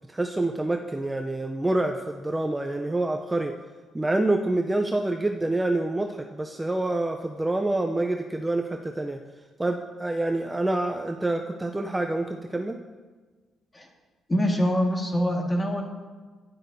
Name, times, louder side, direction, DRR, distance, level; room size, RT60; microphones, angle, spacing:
voice 1, 0.1-3.5 3.9-9.2 9.6-12.8, right 2 dB, 15° right, 3 dB, 0.5 m, -27 dB
voice 2, 14.3-15.8, equal, 20° left, 1 dB, 1.6 m, -24 dB
11.5 x 10.5 x 2.7 m, 1.4 s
cardioid pair, 90°, 0 cm